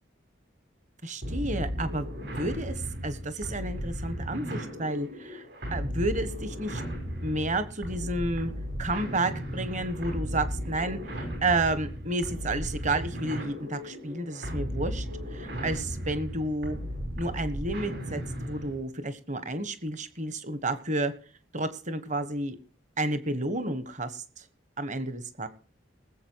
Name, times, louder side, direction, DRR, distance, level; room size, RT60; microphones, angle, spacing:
voice 1, 1.0-5.4 5.7-6.8 7.2-8.5 8.8-15.0 15.3-16.8 17.2-21.1 21.5-22.6 23.0-24.4 24.8-25.5, right 2 dB, 40° right, 11 dB, 1.4 m, -31 dB
sound 1, 1.2-18.8, equal, 60° right, 5.7 m, -35 dB
19.5 x 7.8 x 4.7 m, 0.41 s
head